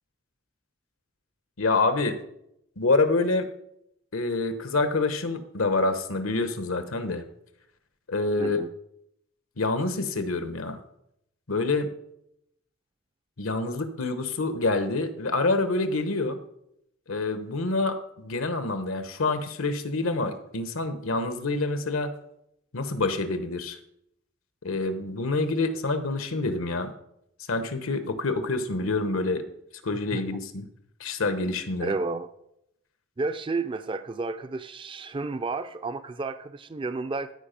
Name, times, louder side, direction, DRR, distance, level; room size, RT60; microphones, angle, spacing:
voice 1, 1.6-2.2 2.8-3.5 4.1-7.2 8.1-8.6 9.6-10.8 11.5-11.9 13.4-16.4 17.1-22.1 22.7-23.8 24.6-26.9 27.5-29.4 29.8-30.7 31.0-31.9, left 3 dB, 80° left, 10 dB, 1.0 m, -27 dB
voice 2, 8.4-8.7 30.1-30.2 31.8-32.3 33.2-37.3, right 3 dB, 25° right, 11 dB, 0.4 m, -31 dB
13.5 x 5.0 x 5.2 m, 0.78 s
head